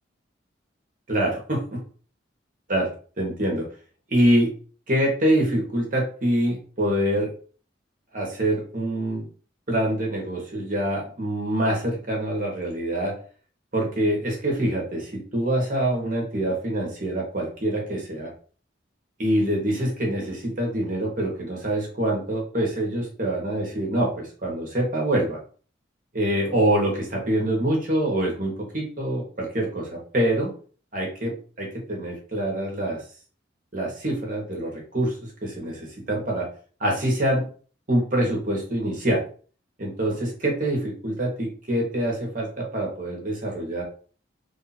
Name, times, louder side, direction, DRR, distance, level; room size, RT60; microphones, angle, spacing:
voice 1, 1.1-1.8 2.7-3.7 4.1-4.5 4.9-7.3 8.1-9.3 9.7-13.1 13.7-18.3 19.2-25.4 26.1-30.5 30.9-33.0 33.7-36.5 36.8-37.5 37.9-39.2 39.8-43.8, right 1 dB, 45° right, -1 dB, 1.3 m, -25 dB
3.3 x 2.8 x 4.2 m, 0.41 s
head